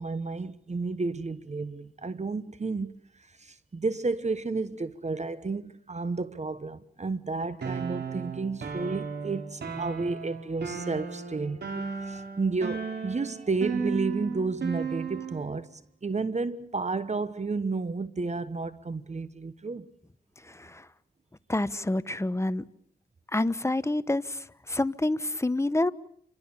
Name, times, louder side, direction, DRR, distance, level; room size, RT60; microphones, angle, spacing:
voice 1, 0.0-19.9, right 3 dB, 40° right, 1.1 m, -32 dB
sound 1, 7.6-15.5, right 5 dB, 80° right, 4.2 m, -35 dB
voice 2, 20.5-20.8 21.5-22.6 23.3-25.9, left 2 dB, 15° left, 1.1 m, -28 dB
29.0 x 24.5 x 7.2 m
cardioid pair, 60°, 17 cm